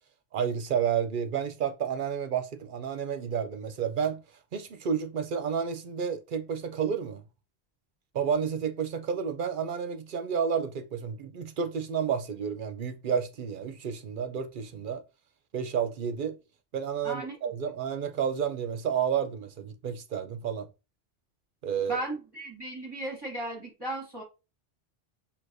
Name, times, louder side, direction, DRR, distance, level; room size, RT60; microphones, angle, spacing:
voice 1, 0.3-4.2 4.5-7.2 8.1-15.0 15.5-16.4 16.7-20.7 21.6-22.0, right 7 dB, 60° right, 0.7 m, -30 dB
voice 2, 17.0-17.3 21.8-24.2, right 1 dB, 25° right, 1.1 m, -36 dB
6.2 x 2.8 x 2.6 m
omnidirectional pair, 1.0 m